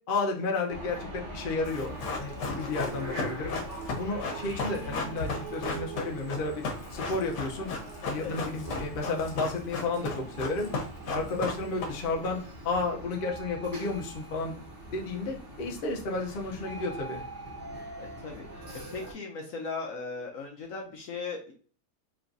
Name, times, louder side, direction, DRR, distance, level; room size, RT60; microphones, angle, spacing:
voice 1, 0.1-3.6 3.9-6.6 6.9-7.7 8.1-10.7 11.1-14.6 14.9-17.2, left 3 dB, 45° left, 1 dB, 0.7 m, -32 dB
sound 1, 0.7-19.1, right 2 dB, 45° right, 1.4 m, -42 dB
Run, 1.6-12.3 12.5-12.6, left 3 dB, 85° left, 1.5 m, -35 dB
voice 2, 8.2-8.5 11.5-11.7 18.0-21.5, left 4 dB, 65° left, 1 dB, 1.0 m, -39 dB
4.6 x 3.0 x 2.5 m, 0.43 s
omnidirectional pair, 1.8 m